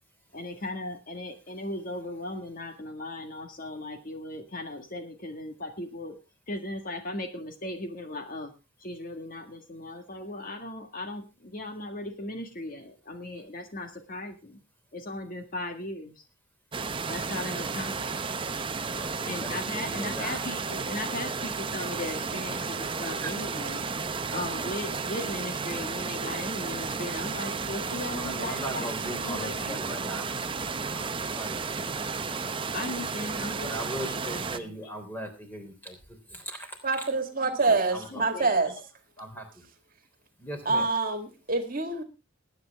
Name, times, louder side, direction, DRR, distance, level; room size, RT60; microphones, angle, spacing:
voice 1, 0.3-6.2 6.5-8.5 8.8-14.6 14.9-16.2 17.1-18.1 19.3-23.9 24.3-30.1 30.8-31.0 32.7-34.7 37.7-38.5, left 1 dB, 45° left, 6 dB, 1.7 m, -37 dB
sound 1, 16.7-34.6, right 4 dB, 25° right, 0.7 m, -33 dB
voice 2, 18.9-20.4 28.1-30.3 30.6-31.1 31.3-31.9 32.2-32.8 33.6-36.0 36.3-37.0 37.7-38.2 39.2-39.6 40.4-40.9, right 1 dB, 10° left, 5 dB, 3.4 m, -39 dB
voice 3, 36.8-38.7 40.7-42.0, right 3 dB, 45° right, 8 dB, 1.9 m, -26 dB
20.5 x 9.1 x 3.5 m, 0.27 s
head